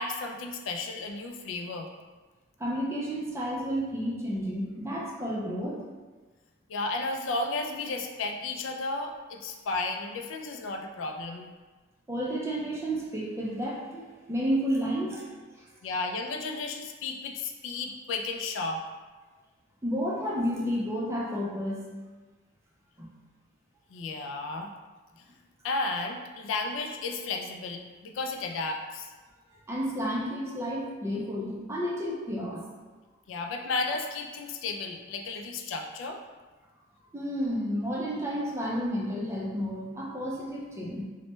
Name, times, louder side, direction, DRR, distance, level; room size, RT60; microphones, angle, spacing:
voice 1, 0.0-1.9 6.7-11.5 15.8-18.8 23.9-24.7 25.6-29.1 33.3-36.2, left 3 dB, 75° left, 4 dB, 0.3 m, -33 dB
voice 2, 2.6-5.8 12.1-15.3 15.6-15.7 19.8-21.8 23.0-23.1 29.5-32.6 37.1-41.1, equal, 15° right, -4 dB, 0.4 m, -31 dB
3.1 x 2.1 x 3.0 m, 1.3 s
head